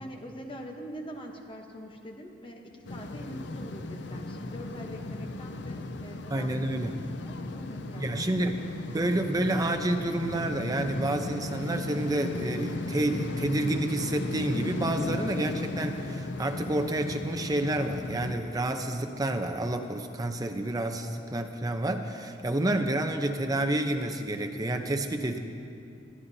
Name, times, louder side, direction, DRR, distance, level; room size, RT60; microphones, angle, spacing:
voice 1, 0.0-8.1, equal, 30° left, 2 dB, 1.0 m, -44 dB
sound 1, 2.9-18.3, left 2 dB, 70° left, 0.6 m, -36 dB
voice 2, 6.3-6.9 7.9-25.4, right 1 dB, 20° right, 4 dB, 0.7 m, -29 dB
22.5 x 13.5 x 2.8 m, 2.5 s
head